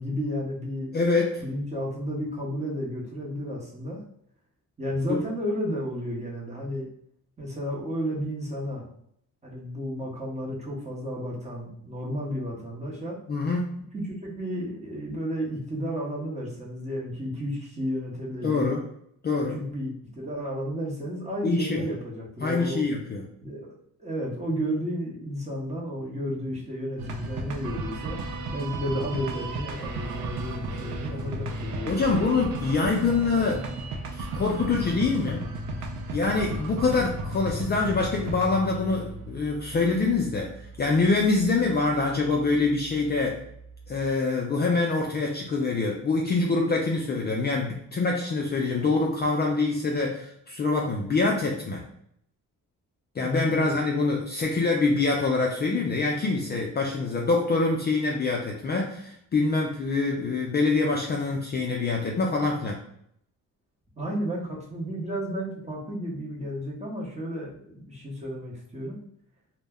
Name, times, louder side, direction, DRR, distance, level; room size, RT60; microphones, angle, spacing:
voice 1, 0.0-0.9 1.4-4.0 4.8-6.9 7.4-8.8 9.4-13.2 13.9-18.7 19.5-22.8 23.4-28.2 28.5-32.3 53.2-53.7 64.0-69.0, equal, 20° right, -3 dB, 0.8 m, -32 dB
voice 2, 0.9-1.4 5.1-5.2 13.3-13.8 18.4-18.8 19.2-19.6 21.4-21.9 22.4-23.3 31.8-33.7 34.1-35.5 36.1-40.5 40.8-43.4 43.9-51.9 53.2-62.8, left 3 dB, 30° left, -1 dB, 0.4 m, -25 dB
sound 1, 27.0-44.1, right 2 dB, 60° right, 0.5 m, -35 dB
2.1 x 2.1 x 3.4 m, 0.70 s
cardioid pair, 100°, 34 cm